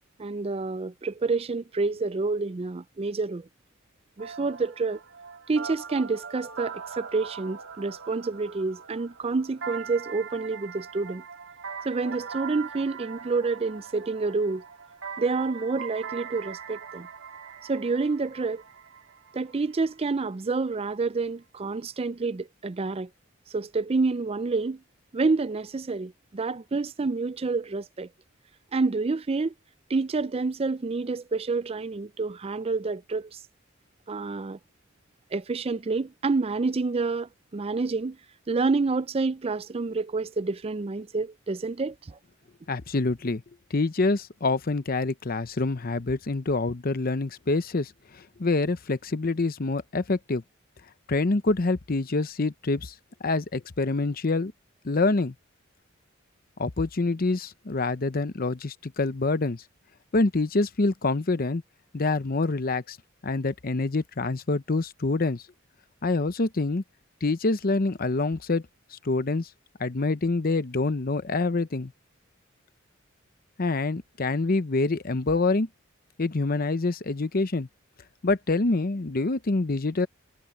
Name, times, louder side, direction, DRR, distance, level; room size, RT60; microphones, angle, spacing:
voice 1, 0.2-3.4 4.2-5.0 5.5-11.2 11.9-14.6 15.2-17.1 17.7-18.6 19.3-23.1 23.5-24.8 25.1-28.1 28.7-29.5 29.9-33.3 34.1-34.6 35.3-38.2 38.5-41.9, right 3 dB, 30° right, 0.4 m, -28 dB
sound 1, 4.2-19.9, right 6 dB, 80° right, 2.3 m, -41 dB
voice 2, 42.7-43.4 43.7-50.4 51.1-52.9 53.2-54.5 54.8-55.3 56.6-59.6 60.1-61.6 61.9-63.0 63.2-65.4 66.0-66.8 67.2-68.6 68.9-69.5 69.8-71.9 73.6-75.7 76.2-77.7 78.2-80.1, left 3 dB, 45° left, 0.8 m, -26 dB
head